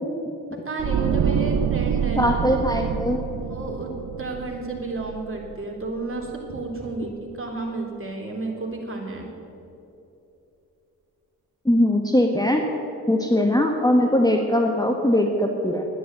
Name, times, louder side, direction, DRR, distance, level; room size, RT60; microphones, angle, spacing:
voice 1, 0.7-2.4 3.5-3.9 4.2-9.3, right 3 dB, 30° right, -1 dB, 3.6 m, -31 dB
sound 1, 0.8-5.9 6.2-6.4, right 8 dB, 45° right, 0.6 m, -26 dB
voice 2, 2.2-3.2 11.6-12.6 13.1-15.8, left 1 dB, 10° left, 2 dB, 1.4 m, -20 dB
11.0 x 9.9 x 7.8 m, 2.8 s
hypercardioid pair, 40°, 42 cm